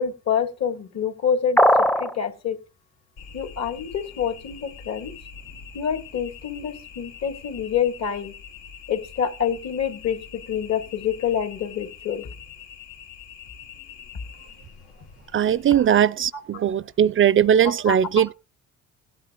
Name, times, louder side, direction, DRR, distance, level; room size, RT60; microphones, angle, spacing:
voice 1, 0.0-2.6 3.3-5.1 5.7-8.3 8.9-12.3 17.6-18.2, left 8 dB, 60° left, 2.0 m, -27 dB
sound 1, 1.6-2.1, equal, 5° left, 0.5 m, -17 dB
sound 2, 3.2-16.1, left 7 dB, 85° left, 1.4 m, -44 dB
voice 2, 15.3-18.3, right 9 dB, 45° right, 0.4 m, -19 dB
17.0 x 9.5 x 2.5 m
cardioid pair, 90°, 30 cm